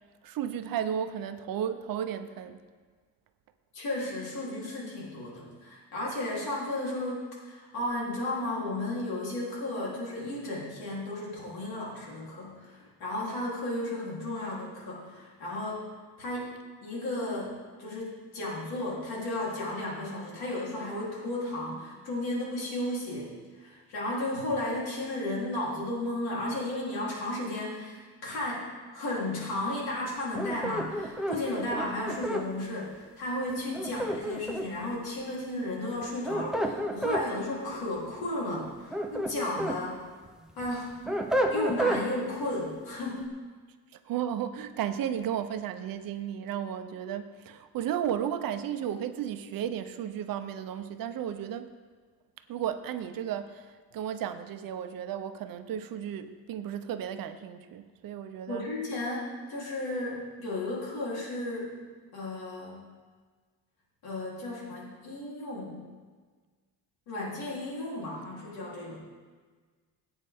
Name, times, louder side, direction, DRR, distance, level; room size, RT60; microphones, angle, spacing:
voice 1, 0.2-2.6 43.9-51.7 52.5-58.7, right 9 dB, 65° right, 10 dB, 0.7 m, -34 dB
voice 2, 3.7-15.8 16.2-40.0 40.6-41.0 41.5-43.3 58.5-61.7 62.1-62.9 64.0-65.9 67.1-69.0, left 1 dB, 75° left, -5 dB, 3.4 m, -34 dB
sound 1, 30.3-32.5 33.7-34.8 36.0-37.3 38.7-39.8 40.3-42.0, right 1 dB, ahead, 0.5 m, -30 dB
14.5 x 8.9 x 3.5 m, 1.5 s
cardioid pair, 165°, 37 cm